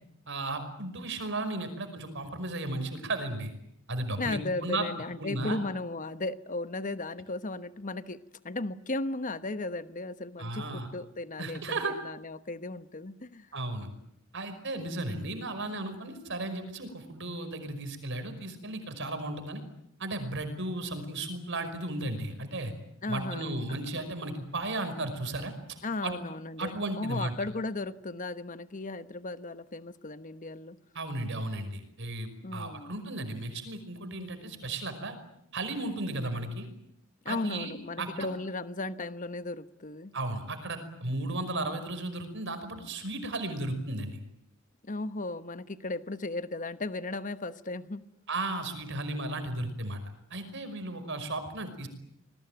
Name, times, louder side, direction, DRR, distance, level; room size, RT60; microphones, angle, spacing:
voice 1, 0.3-3.5 3.9-4.9 5.2-5.6 10.4-10.9 11.4-12.0 13.5-13.9 14.3-19.6 20.0-22.7 23.1-26.1 26.6-27.3 31.0-35.2 35.5-36.7 37.3-37.7 38.0-38.3 40.1-44.2 48.3-50.0 50.3-51.9, right 2 dB, 60° right, 9 dB, 5.3 m, -35 dB
voice 2, 4.2-8.2 8.4-13.5 23.0-23.6 25.8-30.8 32.4-33.0 37.2-40.1 44.8-48.0, left 2 dB, 40° left, 13 dB, 1.1 m, -36 dB
27.5 x 21.0 x 9.2 m, 0.77 s
head